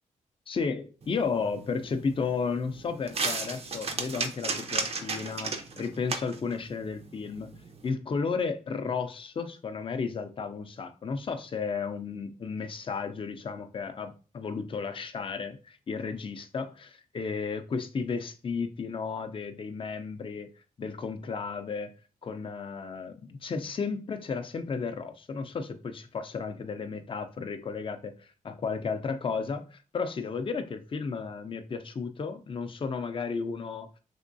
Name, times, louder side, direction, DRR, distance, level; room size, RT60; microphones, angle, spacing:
voice 1, 0.5-7.5 7.8-20.5 20.8-21.9 22.2-33.9, left 5 dB, 40° left, 0.5 m, -33 dB
sound 1, 1.0-7.9, right 4 dB, 45° right, 0.5 m, -36 dB
3.5 x 2.9 x 2.6 m
cardioid pair, 80°, 14 cm